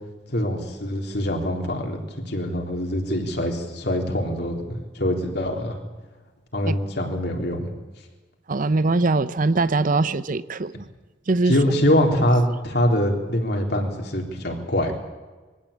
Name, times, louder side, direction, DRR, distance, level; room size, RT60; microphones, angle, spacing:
voice 1, 0.3-5.8 6.5-7.7 11.5-14.9, equal, 60° left, 2 dB, 3.8 m, -24 dB
voice 2, 8.5-10.7 11.3-11.5, right 3 dB, 45° right, 15 dB, 0.7 m, -21 dB
23.0 x 16.0 x 8.7 m, 1.3 s
head